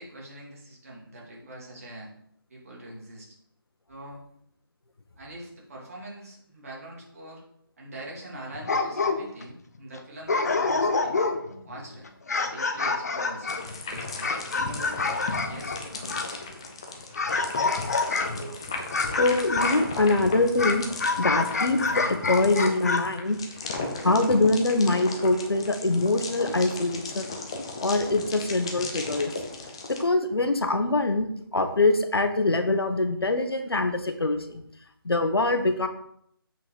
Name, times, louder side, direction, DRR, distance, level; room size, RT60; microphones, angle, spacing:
voice 1, 0.0-2.1 2.5-3.4 3.9-4.2 5.2-7.4 7.8-11.1 11.6-12.0 12.4-15.2 15.4-16.2 18.1-18.6, right 1 dB, 40° right, -3 dB, 2.9 m, -43 dB
sound 1, 8.5-9.4 9.9-10.0 10.3-11.6 12.1-16.3 17.1-18.4 18.9-19.9 20.6-23.0, left 3 dB, 45° left, 0.9 m, -27 dB
sound 2, 13.5-30.0, left 3 dB, 15° left, 0.5 m, -36 dB
voice 2, 19.2-20.9 21.2-23.4 23.8-27.3 27.8-29.3 29.9-31.3 31.5-34.6 35.0-35.9, left 2 dB, 85° left, 7 dB, 1.3 m, -24 dB
7.7 x 5.9 x 5.1 m, 0.71 s
figure-of-eight pair, 170°, 13 cm